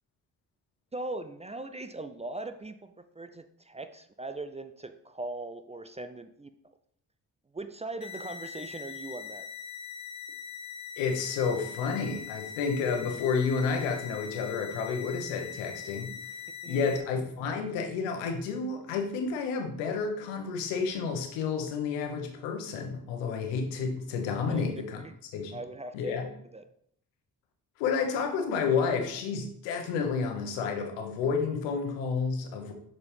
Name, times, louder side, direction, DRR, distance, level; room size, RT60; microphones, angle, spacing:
voice 1, 0.9-6.5 7.5-9.5 16.6-17.0 24.4-25.2 25.5-26.6, right 2 dB, 15° right, 9 dB, 0.4 m, -40 dB
sound 1, 8.0-17.0, left 7 dB, 40° left, 1.0 m, -42 dB
voice 2, 11.0-16.1 16.7-25.0 25.3-25.6 25.9-26.3 27.8-32.7, left 5 dB, 80° left, 5 dB, 1.0 m, -30 dB
6.8 x 4.4 x 3.4 m, 0.70 s
hypercardioid pair, 40°, 43 cm